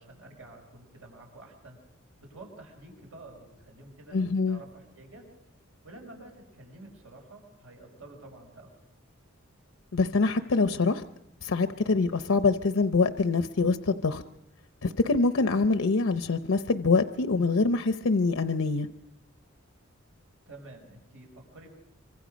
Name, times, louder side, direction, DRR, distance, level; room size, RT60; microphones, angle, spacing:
voice 1, 0.0-1.8 2.2-4.2 4.4-5.2 5.8-8.7 20.5-21.7, right 2 dB, 90° right, 1 dB, 5.6 m, -49 dB
voice 2, 4.1-4.6 9.9-11.0 11.4-14.2 14.8-18.9, left 3 dB, 80° left, 9 dB, 0.7 m, -25 dB
25.0 x 25.0 x 5.2 m, 0.86 s
head